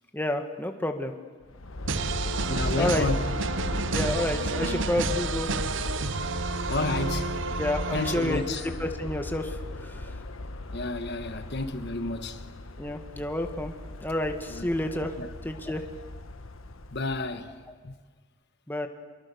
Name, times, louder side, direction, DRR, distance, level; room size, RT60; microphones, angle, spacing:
voice 1, 0.1-1.1 2.8-3.1 3.9-5.5 7.6-10.2 12.8-13.7 14.0-15.1 15.4-15.8 18.7-18.9, left 1 dB, 10° left, 1.7 m, -30 dB
Aircraft, 1.4-17.5, left 2 dB, 85° left, 1.2 m, -36 dB
sound 1, 1.9-8.8, right 4 dB, 65° right, 0.8 m, -31 dB
voice 2, 2.5-3.3 6.7-7.4 7.9-8.6 10.7-12.4 14.5-14.7 15.2-15.3 16.9-17.6 17.8-17.9, left 2 dB, 55° left, 1.3 m, -31 dB
26.0 x 23.0 x 6.9 m
head